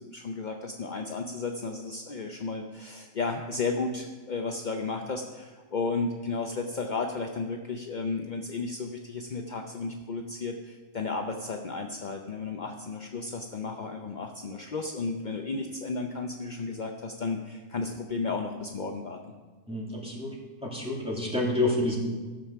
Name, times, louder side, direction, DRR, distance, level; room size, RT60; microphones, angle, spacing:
voice 1, 0.0-19.2, left 4 dB, 50° left, 3 dB, 0.5 m, -33 dB
voice 2, 19.7-20.4 20.6-22.0, left 2 dB, 5° right, -4 dB, 2.5 m, -28 dB
14.5 x 7.0 x 5.7 m, 1.4 s
omnidirectional pair, 1.6 m